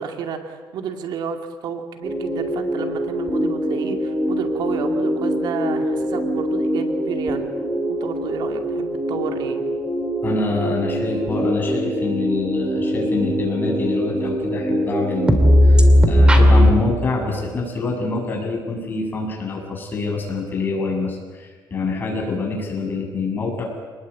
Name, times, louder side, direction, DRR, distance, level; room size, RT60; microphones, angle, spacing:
voice 1, 0.0-1.4 1.6-7.5 7.9-9.7, right 7 dB, 70° right, 5 dB, 2.4 m, -31 dB
sound 1, 2.0-16.7, equal, 15° right, 2.6 m, -20 dB
voice 2, 10.2-23.7, left 3 dB, 25° left, -1 dB, 7.4 m, -26 dB
27.0 x 20.5 x 8.6 m, 1.5 s
cardioid pair, 145°, 8 cm